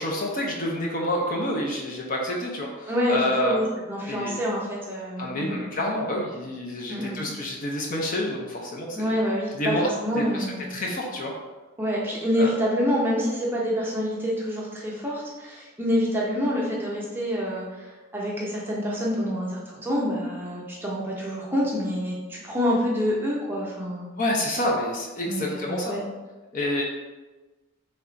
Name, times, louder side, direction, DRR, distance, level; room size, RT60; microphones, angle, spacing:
voice 1, 0.0-3.6 4.1-4.3 5.2-9.0 9.6-9.9 10.1-10.5 10.7-11.3 12.4-12.5 24.2-26.0 26.5-26.8, left 1 dB, 40° left, -1 dB, 0.5 m, -28 dB
voice 2, 2.9-5.6 6.9-7.2 8.9-10.7 11.8-24.1 25.3-26.0, equal, 10° right, -5 dB, 0.6 m, -27 dB
3.3 x 2.4 x 3.9 m, 1.2 s
head